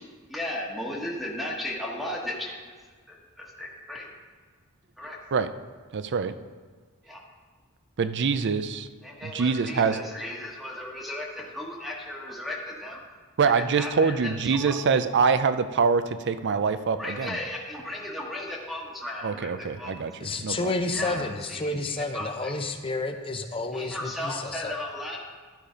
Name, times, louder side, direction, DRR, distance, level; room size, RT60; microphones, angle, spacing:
voice 1, 0.3-2.6 3.1-4.1 5.0-5.2 7.0-7.2 9.0-13.0 13.8-14.8 17.0-20.0 20.9-21.2 21.5-22.5 23.7-25.2, left 1 dB, ahead, -3 dB, 1.2 m, -35 dB
voice 2, 5.9-6.4 8.0-8.9 9.2-10.0 13.4-17.4 19.2-20.1 20.4-20.7, right 5 dB, 55° right, 12 dB, 0.5 m, -24 dB
voice 3, 20.2-24.7, left 2 dB, 25° left, 6 dB, 0.7 m, -30 dB
12.0 x 5.0 x 5.1 m, 1.5 s
head